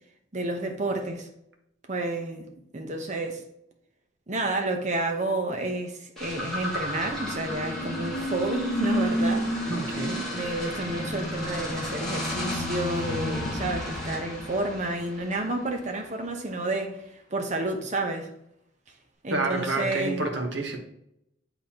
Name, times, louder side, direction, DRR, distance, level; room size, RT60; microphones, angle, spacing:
voice 1, 0.3-1.3 1.9-2.5 2.7-3.4 4.3-9.5 10.3-18.3 19.2-20.2, right 2 dB, 40° right, 0.9 m, -30 dB
sound 1, 6.2-15.7, equal, 5° left, 2.0 m, -31 dB
voice 2, 9.7-10.3 19.3-20.8, right 2 dB, 65° right, 1.3 m, -29 dB
8.6 x 4.0 x 2.9 m
head